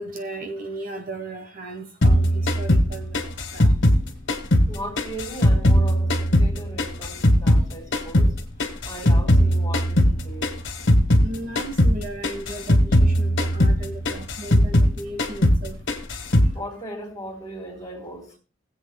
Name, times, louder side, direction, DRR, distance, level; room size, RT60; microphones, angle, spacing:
voice 1, 0.0-3.7 11.0-15.8 16.4-16.6, right 2 dB, 45° right, 1.2 m, -36 dB
sound 1, 2.0-4.7 5.0-7.7 7.9-11.3 11.5-12.0 12.2-14.9 15.2-15.6 15.9-16.5, equal, 60° left, 1.6 m, -19 dB
voice 2, 4.7-8.4 8.9-10.6 16.5-18.3, right 1 dB, 20° left, 3.7 m, -37 dB
19.5 x 8.1 x 2.2 m
head